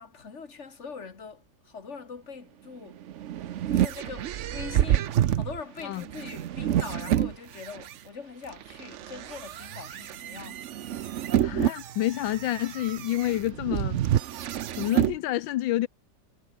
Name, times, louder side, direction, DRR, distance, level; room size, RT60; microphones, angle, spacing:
voice 1, 0.0-3.0 3.7-10.7, left 5 dB, 40° left, 2.4 m, -42 dB
sound 1, 2.9-7.9 8.5-15.2, right 11 dB, 65° right, 0.7 m, -28 dB
voice 2, 11.4-14.0 14.8-15.9, left 14 dB, 85° left, 1.5 m, -28 dB
omnidirectional pair, 2.0 m